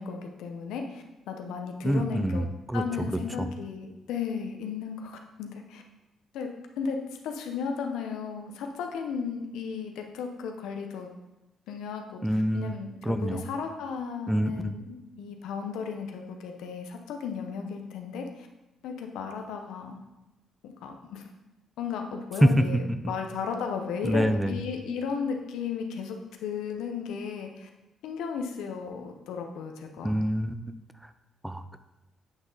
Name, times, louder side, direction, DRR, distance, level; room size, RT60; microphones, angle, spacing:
voice 1, 0.0-2.5 2.7-5.8 6.3-6.5 6.8-7.0 7.2-11.1 11.7-12.2 12.5-18.5 18.8-20.0 20.6-21.2 21.8-27.7 28.0-30.1, left 6 dB, 90° left, 4 dB, 0.8 m, -35 dB
voice 2, 1.8-3.5 12.2-12.7 13.0-13.4 14.3-14.7 22.4-23.0 24.0-24.6 30.0-31.1 31.4-31.8, equal, 5° right, 10 dB, 0.4 m, -26 dB
8.0 x 3.8 x 4.0 m, 1.0 s
cardioid pair, 90°, 0 cm